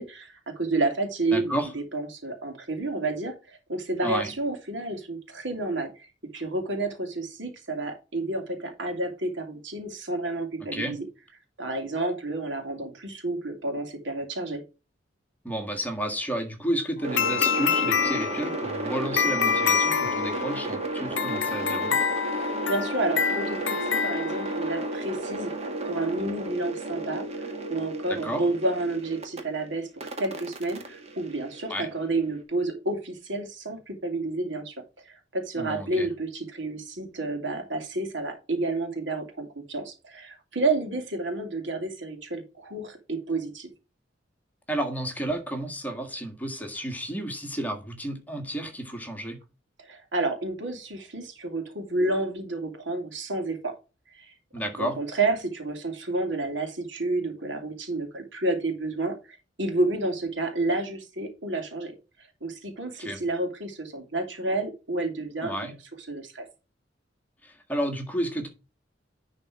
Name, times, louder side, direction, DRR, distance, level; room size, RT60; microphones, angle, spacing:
voice 1, 0.0-6.1 6.3-11.0 11.6-14.6 22.4-25.5 25.8-29.9 30.2-34.7 35.0-43.7 49.8-53.7 54.1-54.4 54.8-61.9 62.4-65.5 66.1-66.4, right 2 dB, 75° right, 2.5 m, -30 dB
voice 2, 1.3-1.7 4.0-4.3 10.6-11.0 15.4-21.9 28.1-28.5 31.7-31.9 35.5-36.1 44.7-49.4 54.5-55.0 63.0-63.2 65.4-65.7 67.4-68.5, right 1 dB, 10° left, 1.7 m, -31 dB
sound 1, 17.0-29.4 30.0-32.1, right 1 dB, 35° right, 1.7 m, -33 dB
sound 2, 17.2-24.9, left 7 dB, 70° left, 0.6 m, -27 dB
10.5 x 4.1 x 4.8 m
head